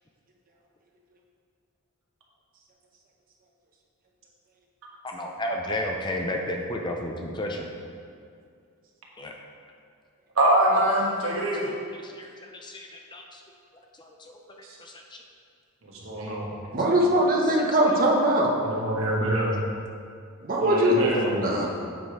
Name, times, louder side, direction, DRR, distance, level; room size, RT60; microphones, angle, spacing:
voice 1, 5.0-7.7 9.2-9.3 11.9-13.4 14.0-14.3 14.8-15.2 17.4-17.6, left 1 dB, 20° left, 1 dB, 0.6 m, -33 dB
voice 2, 10.3-11.7 14.6-14.8 15.9-16.5 18.6-19.7 20.6-21.3, right 1 dB, 65° right, -3 dB, 1.5 m, -24 dB
voice 3, 16.7-18.5 20.4-20.9 21.2-21.7, right 1 dB, 40° right, -1 dB, 1.0 m, -21 dB
7.8 x 5.2 x 4.7 m, 2.3 s
head